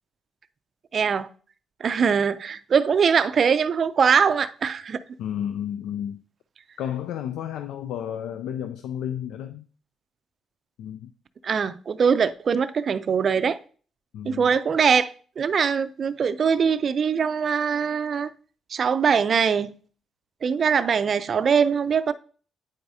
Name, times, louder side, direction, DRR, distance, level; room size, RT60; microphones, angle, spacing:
voice 1, 0.9-1.3 1.8-5.0 11.4-13.6 14.2-18.3 18.7-19.7 20.4-22.1, right 6 dB, 50° right, 0.4 m, -22 dB
voice 2, 5.2-6.2 6.8-9.7 10.8-11.1 14.1-14.5, left 10 dB, 85° left, 0.3 m, -32 dB
8.8 x 4.6 x 2.7 m
cardioid pair, 90°, 0 cm